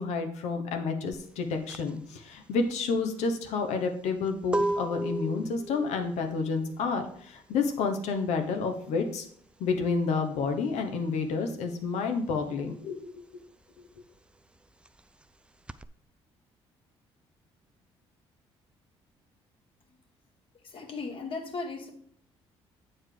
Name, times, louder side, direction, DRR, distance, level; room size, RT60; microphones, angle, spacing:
voice 1, 0.0-9.2 9.6-13.1, left 4 dB, 75° left, 6 dB, 1.1 m, -30 dB
sound 1, 1.1-11.4 11.6-15.8, right 2 dB, 10° right, 0.3 m, -36 dB
voice 2, 20.6-21.9, left 3 dB, 50° left, 4 dB, 1.6 m, -36 dB
7.7 x 4.5 x 4.9 m, 0.63 s
supercardioid pair, 80°, 12 cm